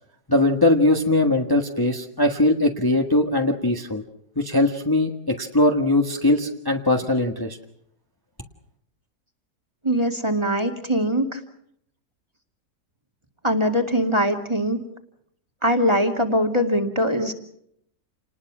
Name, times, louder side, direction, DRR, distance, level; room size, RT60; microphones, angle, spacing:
voice 1, 0.3-4.0 4.4-7.6, left 2 dB, 15° left, 2 dB, 1.4 m, -20 dB
voice 2, 9.8-11.4 13.4-14.8 15.6-17.3, equal, 15° right, 4 dB, 2.2 m, -22 dB
28.5 x 20.0 x 6.1 m, 0.72 s
omnidirectional pair, 1.7 m